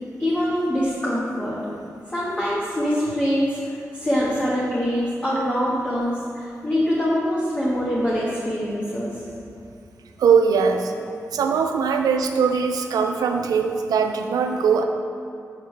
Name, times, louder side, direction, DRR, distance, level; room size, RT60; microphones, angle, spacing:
voice 1, 0.2-1.6 2.1-9.1, equal, 25° left, -8 dB, 1.4 m, -24 dB
voice 2, 10.2-10.9 11.3-14.8, right 6 dB, 90° right, 5 dB, 0.4 m, -20 dB
7.2 x 5.6 x 3.3 m, 2.4 s
cardioid pair, 45°, 6 cm